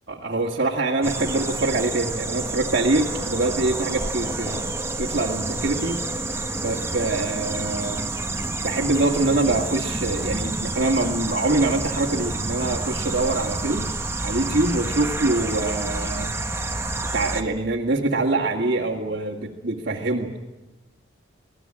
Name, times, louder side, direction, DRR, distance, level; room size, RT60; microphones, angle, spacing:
voice 1, 0.1-4.6 5.0-6.0 6.6-8.1 8.6-13.9 14.2-16.3 17.1-20.3, right 2 dB, 50° right, -4 dB, 2.2 m, -24 dB
sound 1, 1.0-17.4, right 2 dB, 15° right, 1.4 m, -29 dB
24.5 x 18.0 x 8.9 m, 1.1 s
head